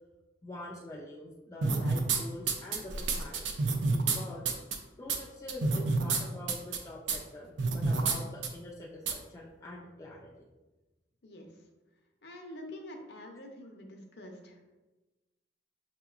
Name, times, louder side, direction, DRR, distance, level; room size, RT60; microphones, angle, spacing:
voice 1, 0.4-4.5 5.0-10.5, left 1 dB, 15° left, -2 dB, 0.3 m, -45 dB
sound 1, 1.6-2.2 2.5-4.2 4.4-4.7 5.1-5.2 5.5-6.2 6.5-6.8 7.1-7.2 7.6-8.2 8.4-8.5 9.1-9.2, right 4 dB, 90° right, 0.5 m, -28 dB
voice 2, 12.2-14.8, left 1 dB, 60° left, 3 dB, 0.6 m, -46 dB
5.6 x 2.9 x 2.4 m, 1.1 s
head